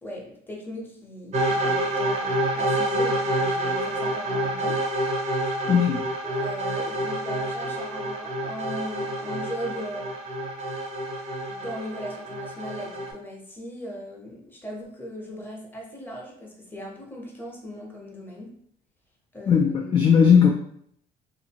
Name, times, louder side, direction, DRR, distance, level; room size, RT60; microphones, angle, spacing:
voice 1, 0.0-4.8 5.6-5.7 6.2-10.2 11.5-18.5 19.3-19.9, equal, 10° left, -2 dB, 0.8 m, -38 dB
sound 1, 1.3-13.1, right 1 dB, 40° right, 0.6 m, -28 dB
voice 2, 5.7-6.0 19.5-20.5, left 7 dB, 30° left, 0 dB, 0.3 m, -17 dB
2.6 x 2.5 x 2.8 m, 0.66 s
cardioid pair, 110°, 17 cm